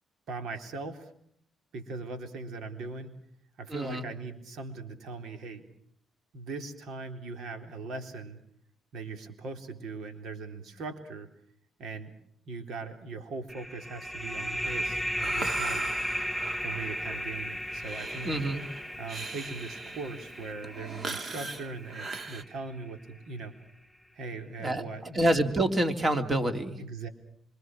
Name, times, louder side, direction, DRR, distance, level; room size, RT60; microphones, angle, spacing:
voice 1, 0.3-1.1 1.7-3.2 3.6-5.6 6.3-8.4 8.9-11.3 11.8-12.1 12.5-15.9 16.6-18.3 19.0-23.5 24.1-25.2 26.8-27.1, right 3 dB, 70° right, 6 dB, 4.0 m, -40 dB
voice 2, 3.7-4.1 18.2-18.6 24.6-26.8, right 1 dB, 30° right, 7 dB, 3.2 m, -27 dB
sound 1, 13.5-22.8, equal, ahead, 2.0 m, -35 dB
Breathing, 14.6-22.4, right 4 dB, 45° right, 2.6 m, -40 dB
26.5 x 25.0 x 6.3 m, 0.66 s
cardioid pair, 90°, 0 cm